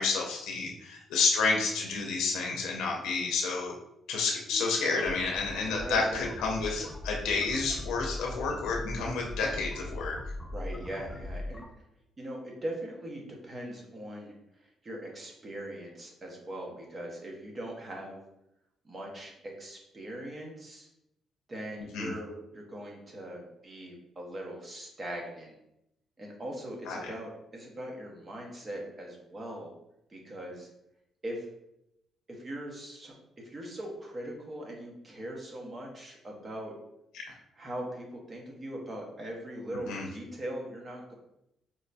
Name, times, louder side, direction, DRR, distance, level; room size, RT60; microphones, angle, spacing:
voice 1, 0.0-3.7 4.1-10.2 21.9-22.1 26.9-27.1 37.1-37.3 39.9-40.1, left 4 dB, 90° left, 0 dB, 0.5 m, -30 dB
sound 1, 4.5-11.6, left 1 dB, 25° left, 0.6 m, -40 dB
voice 2, 5.8-6.3 10.5-11.6 12.2-14.3 14.8-18.2 18.8-20.9 21.5-25.5 26.2-29.7 30.1-30.7 31.2-31.4 32.3-33.1 33.4-36.7 37.6-41.1, right 1 dB, 35° right, -1 dB, 0.9 m, -40 dB
4.5 x 2.5 x 2.2 m, 0.82 s
cardioid pair, 90°, 0 cm